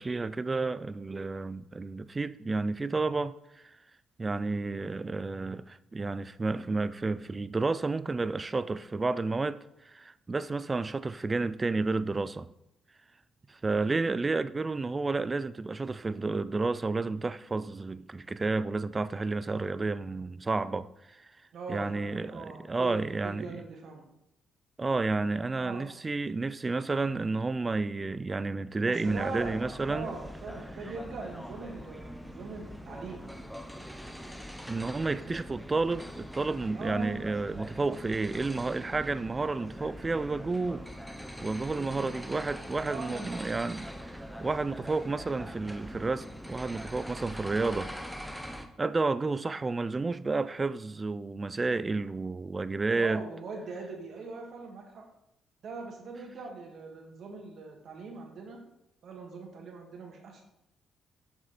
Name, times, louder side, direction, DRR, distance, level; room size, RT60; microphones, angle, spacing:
voice 1, 0.0-3.8 4.2-12.5 13.5-21.3 21.7-23.5 24.8-30.1 34.7-40.8 41.4-47.9 48.8-53.3, right 3 dB, 25° right, 0.3 m, -31 dB
voice 2, 21.5-24.1 25.6-25.8 28.8-33.3 35.0-35.4 36.7-37.2 41.7-42.1 42.8-43.4 52.9-55.0 55.6-58.6 59.0-60.4, right 4 dB, 65° right, 1.9 m, -41 dB
sound 1, 29.0-48.7, equal, ahead, 0.8 m, -43 dB
7.7 x 6.1 x 4.2 m
cardioid pair, 90°, 0 cm